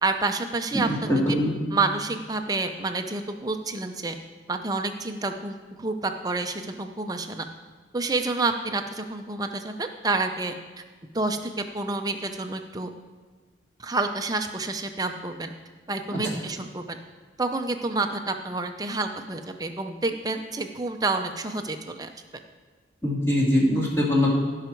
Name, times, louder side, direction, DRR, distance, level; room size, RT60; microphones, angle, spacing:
voice 1, 0.0-1.4 1.7-4.1 4.5-7.4 7.9-10.5 11.1-12.9 13.8-15.5 15.9-17.0 17.4-22.1, right 3 dB, 20° right, 6 dB, 0.6 m, -29 dB
voice 2, 0.8-1.5 16.1-16.2 23.0-24.3, left 1 dB, 15° left, -5 dB, 2.4 m, -22 dB
16.5 x 5.7 x 4.6 m, 1.4 s
head